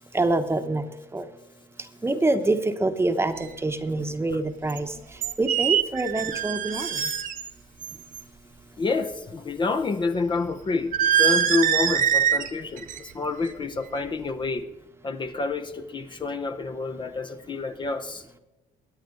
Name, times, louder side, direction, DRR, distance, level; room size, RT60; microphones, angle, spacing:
voice 1, 0.1-0.8 1.1-1.2 2.0-4.9 5.4-7.0, right 2 dB, 15° right, 1.1 m, -25 dB
sound 1, 3.4-3.5 4.7-4.8 5.2-7.5 7.8-8.2 10.9-12.5 12.8-13.1 13.4-13.8, right 9 dB, 55° right, 1.2 m, -24 dB
voice 2, 8.8-14.7 15.0-18.2, left 3 dB, 30° left, 0.8 m, -28 dB
23.0 x 9.3 x 3.9 m
cardioid pair, 110°, 17 cm